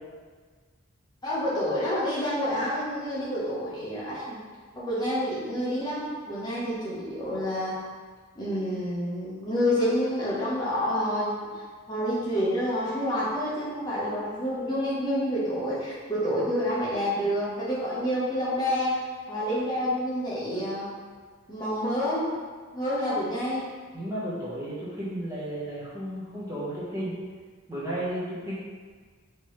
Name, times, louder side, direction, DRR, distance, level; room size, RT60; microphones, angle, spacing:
voice 1, 1.2-4.4 4.8-7.8 8.4-11.4 11.9-19.0 19.3-20.9 21.5-22.3 22.7-23.6, equal, 20° left, -9 dB, 0.9 m, -28 dB
voice 2, 23.9-27.2 27.7-28.5, right 1 dB, 15° right, -9 dB, 0.8 m, -33 dB
4.5 x 3.0 x 3.0 m, 1.5 s
head